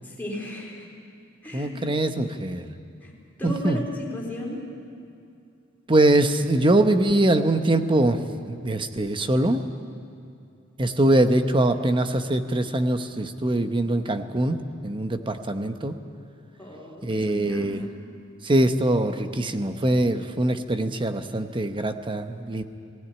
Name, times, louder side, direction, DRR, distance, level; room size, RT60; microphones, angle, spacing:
voice 1, 0.0-0.9 1.4-1.7 3.0-3.1 3.4-4.7 16.6-17.8, left 1 dB, 10° left, -3 dB, 3.9 m, -35 dB
voice 2, 1.5-2.7 3.4-3.8 5.9-8.2 8.5-9.6 10.8-16.0 17.0-17.8 18.4-22.6, right 1 dB, 25° right, 8 dB, 0.9 m, -23 dB
19.5 x 16.0 x 9.9 m, 2.6 s
head